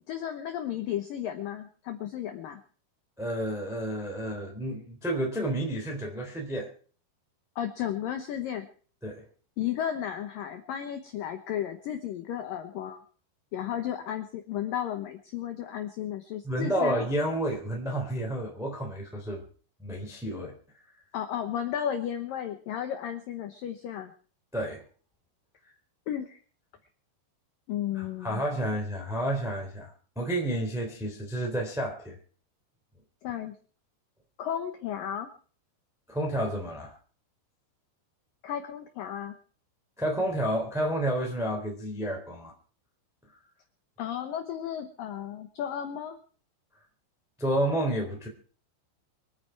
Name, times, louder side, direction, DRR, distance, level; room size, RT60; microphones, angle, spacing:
voice 1, 0.1-2.6 7.6-8.7 9.6-13.0 13.5-17.0 21.1-24.1 26.1-26.4 27.7-28.4 33.2-33.5 34.4-35.3 38.4-39.4 44.0-46.2, left 10 dB, 75° left, 7 dB, 2.0 m, -34 dB
voice 2, 3.2-6.7 9.0-9.2 16.4-19.4 19.8-20.5 24.5-24.8 27.9-29.9 30.1-32.2 36.1-36.9 40.0-42.5 47.4-48.3, right 1 dB, ahead, 0 dB, 2.6 m, -30 dB
26.0 x 9.0 x 4.6 m, 0.42 s
omnidirectional pair, 5.5 m